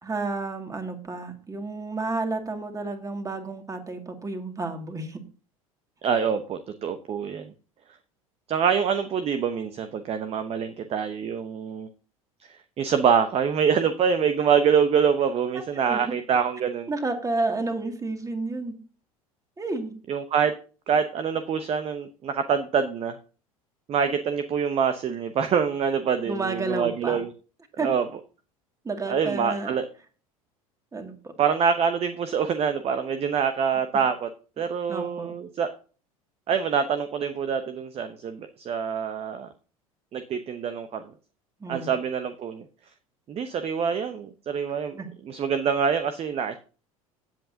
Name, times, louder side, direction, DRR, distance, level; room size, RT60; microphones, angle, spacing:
voice 1, 0.0-5.2 15.5-16.1 16.9-18.8 19.6-20.0 26.3-27.2 27.8-27.9 28.8-29.7 30.9-31.3 34.9-35.3 41.6-41.9 44.9-45.1, right 3 dB, 20° right, 5 dB, 2.2 m, -31 dB
voice 2, 6.0-7.5 8.5-11.9 12.8-16.9 20.1-20.5 20.9-23.2 23.9-27.3 27.8-28.0 29.1-29.8 31.4-34.3 34.6-35.7 36.5-39.5 40.1-41.0 41.7-42.6 43.3-45.0 45.2-46.6, right 7 dB, 35° right, 9 dB, 0.9 m, -25 dB
16.0 x 7.8 x 2.8 m, 0.37 s
figure-of-eight pair, 75°, 19 cm